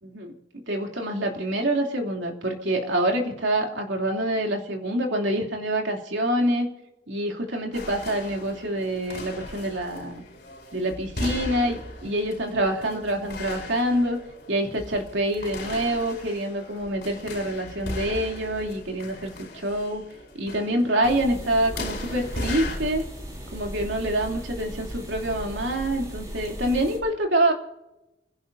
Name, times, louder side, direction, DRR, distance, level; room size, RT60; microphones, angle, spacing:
voice 1, 0.0-6.7 7.1-10.2 10.7-14.2 14.5-20.0 20.4-23.1 23.5-27.5, right 1 dB, 85° right, 1 dB, 3.0 m, -26 dB
sound 1, 7.7-22.8, left 2 dB, 55° left, 5.3 m, -38 dB
sound 2, 21.0-27.0, equal, 20° right, 4.9 m, -37 dB
29.0 x 16.5 x 2.7 m, 0.93 s
head